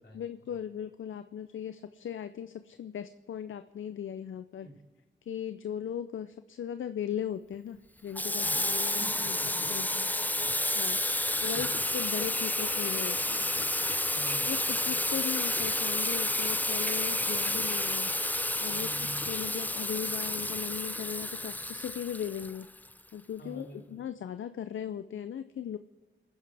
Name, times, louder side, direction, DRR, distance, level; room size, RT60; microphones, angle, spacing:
voice 1, 0.1-4.7 5.3-9.4 9.7-10.1 10.8-13.5 14.4-18.1 18.6-22.7 23.1-25.8, left 9 dB, 75° left, 11 dB, 0.5 m, -38 dB
Water tap faucet / Sink (filling or washing), 8.1-22.9, left 1 dB, 10° left, 0.5 m, -30 dB
voice 2, 9.0-9.7 10.0-10.5 11.5-11.7 14.1-14.6 18.7-19.2 23.4-24.0, right 1 dB, 60° left, -2 dB, 4.3 m, -47 dB
30.0 x 10.0 x 3.4 m, 1.2 s
cardioid pair, 40°, 20 cm